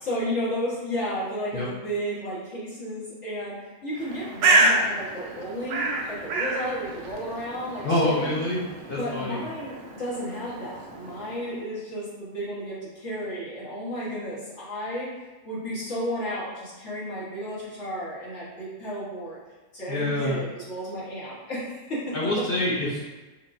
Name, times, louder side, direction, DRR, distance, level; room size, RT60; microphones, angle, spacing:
voice 1, 0.0-3.6 3.8-7.9 8.2-8.4 8.9-15.1 15.4-19.4 19.7-22.1, equal, 50° left, -9 dB, 1.5 m, -32 dB
Bird, 4.0-11.6, right 2 dB, 65° right, 0.9 m, -28 dB
voice 2, 7.8-8.6 8.9-9.4 19.9-20.4 22.1-23.0, left 1 dB, 70° left, -5 dB, 0.5 m, -26 dB
4.6 x 2.6 x 2.6 m, 1.2 s
omnidirectional pair, 1.7 m